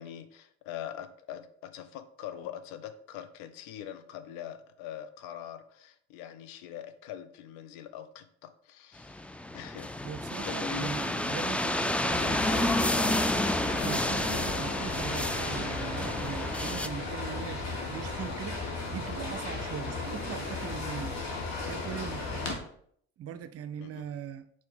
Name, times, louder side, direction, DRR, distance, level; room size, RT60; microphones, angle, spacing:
voice 1, 0.0-9.2 9.5-9.9 10.4-11.4 23.8-24.1, left 10 dB, 75° left, 0.7 m, -43 dB
sound 1, 9.0-16.9, left 1 dB, 5° left, 0.3 m, -30 dB
voice 2, 10.0-13.2 13.8-21.4 21.6-22.6 23.2-24.5, right 9 dB, 45° right, 0.6 m, -40 dB
sound 2, 12.1-22.5, left 3 dB, 55° left, 1.8 m, -35 dB
4.6 x 4.5 x 5.4 m
hypercardioid pair, 60°, 32 cm